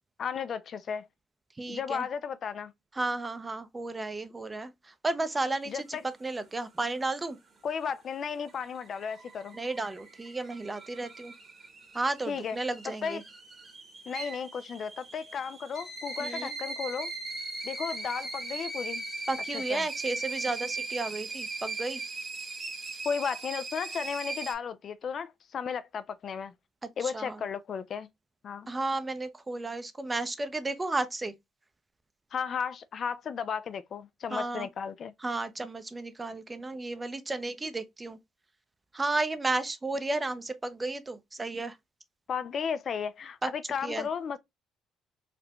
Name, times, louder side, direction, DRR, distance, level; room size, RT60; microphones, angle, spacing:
voice 1, 0.2-1.1 1.7-2.7 5.7-6.0 7.6-9.6 12.3-12.6 12.8-13.2 14.1-17.1 17.6-19.0 19.5-19.9 23.0-26.5 27.0-28.1 28.4-28.7 32.3-35.1 42.3-44.4, left 6 dB, 55° left, 0.3 m, -34 dB
voice 2, 1.6-2.1 3.0-4.7 5.0-7.4 9.5-11.3 11.9-13.2 16.2-16.5 19.3-22.0 27.0-27.4 28.7-31.3 34.3-34.7 35.2-38.2 38.9-41.7 43.4-43.5 43.8-44.1, right 2 dB, 25° right, 0.6 m, -33 dB
sound 1, 8.3-24.5, right 3 dB, 40° right, 1.5 m, -39 dB
4.1 x 2.1 x 2.8 m
hypercardioid pair, 60°, 0 cm